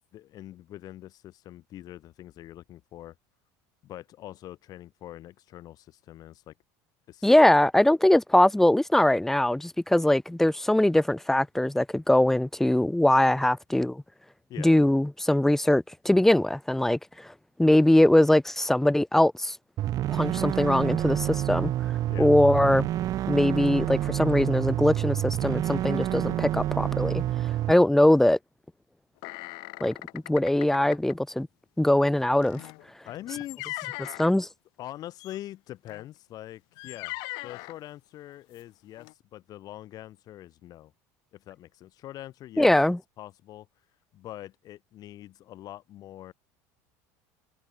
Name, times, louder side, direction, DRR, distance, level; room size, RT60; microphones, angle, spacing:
voice 1, 0.0-3.1 3.8-6.5 7.1-7.3 14.5-14.8 22.1-22.3 33.0-33.9 34.8-37.2 37.4-40.9 41.3-42.7 43.2-43.7 44.1-46.3, left 13 dB, 50° left, 4.7 m, -43 dB
voice 2, 7.2-14.0 14.6-17.3 17.6-19.6 20.1-21.7 22.2-22.9 23.3-27.2 27.7-28.4 29.8-31.5 31.8-32.6 34.0-34.5 42.6-43.0, left 1 dB, 5° left, 0.6 m, -22 dB
sound 1, 19.8-27.7, right 13 dB, 45° right, 0.7 m, -28 dB
sound 2, 29.2-31.1 32.4-34.3 35.2-35.4 35.9-36.1 36.8-37.8 38.5-38.6 39.0-39.1, left 29 dB, 70° left, 4.7 m, -39 dB
supercardioid pair, 105°, 8 cm